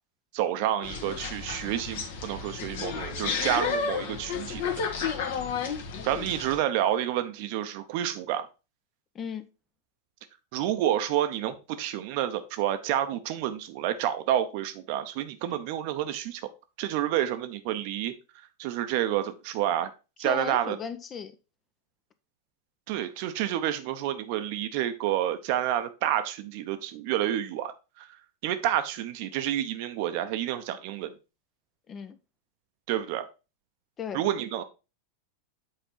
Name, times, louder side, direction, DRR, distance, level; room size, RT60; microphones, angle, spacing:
voice 1, 0.3-5.1 6.0-8.5 10.5-16.4 16.8-18.1 18.6-19.9 20.2-20.8 22.9-27.7 28.0-28.1 28.4-31.1 32.9-33.2 34.1-34.6, right 11 dB, 45° right, 0.8 m, -29 dB
sound 1, 0.8-6.6, left 6 dB, 55° left, 1.5 m, -32 dB
voice 2, 9.1-9.4 20.2-21.3 31.9-32.2 34.0-34.2, left 7 dB, 25° left, 0.7 m, -36 dB
7.6 x 4.4 x 4.4 m
figure-of-eight pair, 90°, 0 cm